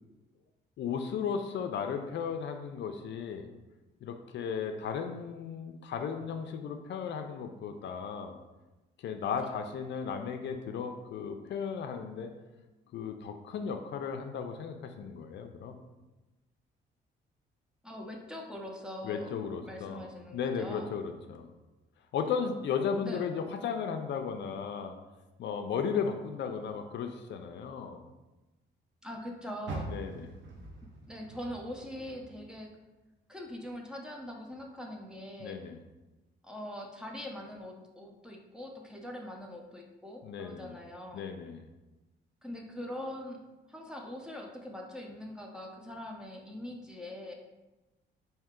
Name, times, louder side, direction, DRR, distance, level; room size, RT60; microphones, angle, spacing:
voice 1, 0.8-3.5 4.0-8.4 9.0-12.3 12.9-15.8 19.0-20.0 20.3-21.5 22.1-24.9 25.4-28.0 29.9-30.4 35.4-35.8 40.2-40.8 41.1-41.7, left 6 dB, 65° left, 5 dB, 0.5 m, -35 dB
voice 2, 17.8-19.3 19.6-20.9 23.0-23.3 29.0-29.9 31.1-32.7 33.3-35.6 36.4-41.2 42.4-43.4 43.7-47.3, left 1 dB, 5° right, 0 dB, 0.7 m, -42 dB
Car, 29.6-32.9 33.3-34.7 35.1-35.2 35.8-35.9, right 2 dB, 70° right, 0.8 m, -44 dB
4.4 x 2.8 x 3.6 m, 1.1 s
cardioid pair, 90°, 20 cm